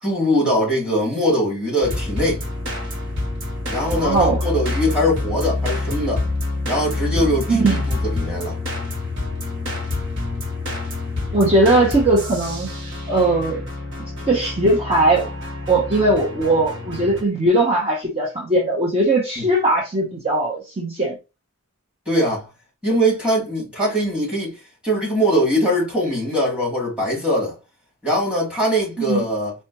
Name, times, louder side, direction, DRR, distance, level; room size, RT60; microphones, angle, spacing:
voice 1, 0.0-2.4 3.7-6.2 6.7-8.6 19.4-19.5 22.1-22.5 22.8-24.5 24.8-27.5 28.0-29.5, equal, 5° right, 1.9 m, -21 dB
sound 1, 1.8-17.2, left 2 dB, 55° right, 1.1 m, -27 dB
voice 2, 3.9-4.4 7.5-7.8 11.3-12.7 13.1-13.6 14.3-15.3 15.7-21.2 29.0-29.2, right 2 dB, 25° right, 0.8 m, -19 dB
4.2 x 2.2 x 2.8 m
head